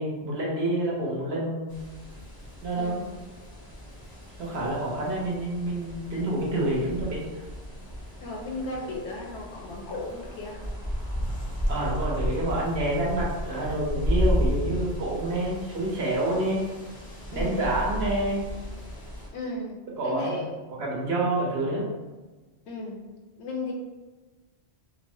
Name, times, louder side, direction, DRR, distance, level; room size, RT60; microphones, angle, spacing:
voice 1, 0.0-1.8 2.6-2.9 4.4-7.2 11.7-16.6 17.3-18.4 20.0-20.5 20.8-21.9, right 1 dB, 70° right, -4 dB, 1.0 m, -28 dB
sound 1, 1.7-19.3, equal, 30° left, 0.5 m, -33 dB
voice 2, 2.8-3.1 8.2-10.6 17.3-18.0 19.3-20.5 22.7-23.0 23.4-23.7, left 2 dB, 75° left, -1 dB, 0.9 m, -35 dB
3.2 x 2.0 x 2.6 m, 1.2 s
omnidirectional pair, 1.1 m